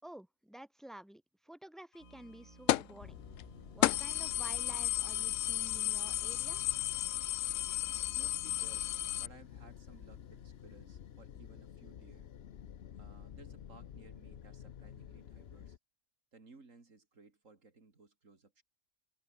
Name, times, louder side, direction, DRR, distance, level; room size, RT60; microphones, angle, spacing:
voice 1, 0.0-3.2 3.7-6.6, right 1 dB, ahead, 3.0 m, -51 dB
sound 1, 2.0-5.5 5.8-5.9 6.6-9.3, right 4 dB, 70° right, 2.9 m, -58 dB
sound 2, 2.7-3.0 3.4-3.5 3.8-9.3, left 14 dB, 85° left, 0.9 m, -33 dB
sound 3, 3.0-15.8, left 9 dB, 55° left, 1.0 m, -51 dB
voice 2, 8.1-12.3 12.9-15.8 16.3-18.6, right 3 dB, 90° right, 3.4 m, -59 dB
omnidirectional pair, 1.3 m